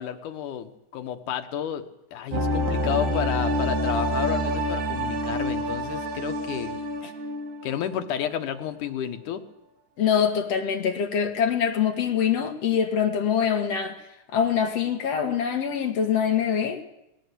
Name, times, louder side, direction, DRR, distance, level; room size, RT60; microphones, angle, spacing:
voice 1, 0.0-1.8 2.1-6.8 7.6-9.4, left 9 dB, 90° left, 7 dB, 2.9 m, -31 dB
sound 1, 2.3-8.0 8.3-8.4, equal, 70° right, 3.8 m, -27 dB
voice 2, 10.0-14.0 14.3-16.8, left 8 dB, 55° left, 4 dB, 3.0 m, -24 dB
20.0 x 17.5 x 8.3 m, 0.85 s
omnidirectional pair, 3.5 m